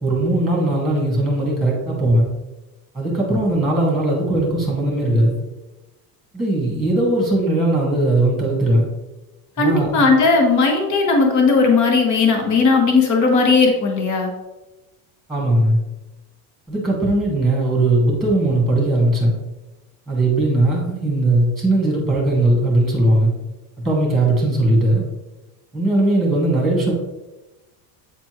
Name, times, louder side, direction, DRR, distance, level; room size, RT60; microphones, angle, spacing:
voice 1, 0.0-2.3 2.9-5.4 6.3-8.9 9.6-10.1 15.3-15.8 16.7-19.3 20.1-23.3 23.8-25.0 25.7-26.9, right 1 dB, ahead, -3 dB, 2.0 m, -18 dB
voice 2, 9.6-14.3, left 4 dB, 40° left, 2 dB, 1.4 m, -16 dB
8.4 x 4.3 x 3.1 m, 1.1 s
cardioid pair, 140°, 46 cm